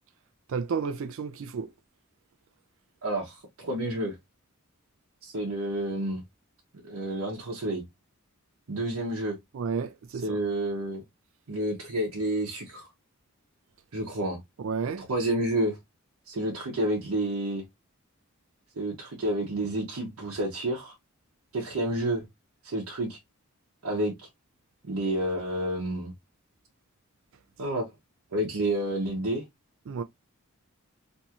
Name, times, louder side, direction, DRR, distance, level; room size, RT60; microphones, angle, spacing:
voice 1, 0.5-1.7 9.5-10.4 14.6-15.0 29.9-30.0, right 5 dB, 65° right, 0.3 m, -31 dB
voice 2, 3.0-4.1 5.2-6.2 6.8-7.8 8.7-9.4 10.1-11.0 11.5-12.9 13.9-14.4 15.0-15.8 16.3-17.6 18.8-20.9 21.5-22.3 22.6-23.2 23.8-24.1 24.8-26.1 27.6-27.9 28.3-29.4, right 1 dB, 85° right, 0.8 m, -29 dB
2.6 x 2.3 x 2.7 m
head